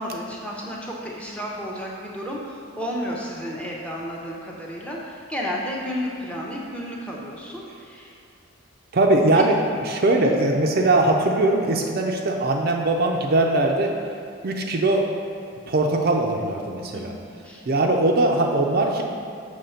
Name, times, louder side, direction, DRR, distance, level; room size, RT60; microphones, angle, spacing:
voice 1, 0.0-8.2 9.1-9.2 10.1-10.4 16.9-17.0 17.4-17.6, equal, 5° left, -3 dB, 0.6 m, -32 dB
voice 2, 8.9-13.9 14.4-15.0 15.7-17.1 17.7-19.0, right 2 dB, 45° right, 1 dB, 0.4 m, -20 dB
6.7 x 3.2 x 5.6 m, 2.5 s
head